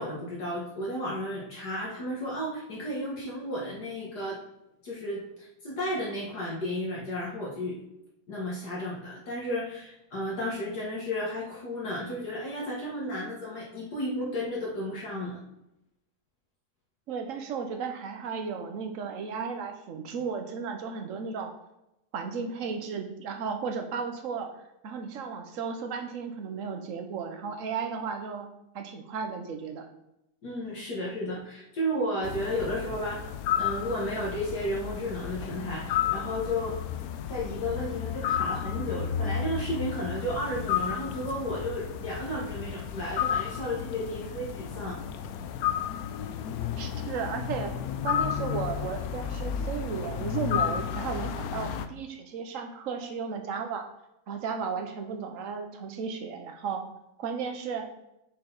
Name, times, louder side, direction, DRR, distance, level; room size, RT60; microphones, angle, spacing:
voice 1, 0.0-4.4 4.8-7.8 8.3-15.4 30.4-33.3 33.6-36.8 37.3-45.0, equal, 55° left, -5 dB, 2.1 m, -33 dB
voice 2, 17.1-21.5 22.1-24.5 24.8-28.5 28.7-29.8 46.8-47.7 48.0-53.9 54.3-56.8 57.2-57.9, right 6 dB, 50° right, 5 dB, 1.1 m, -34 dB
sound 1, 32.2-51.9, left 9 dB, 80° left, 0.8 m, -32 dB
6.4 x 5.8 x 4.0 m, 0.86 s
omnidirectional pair, 2.1 m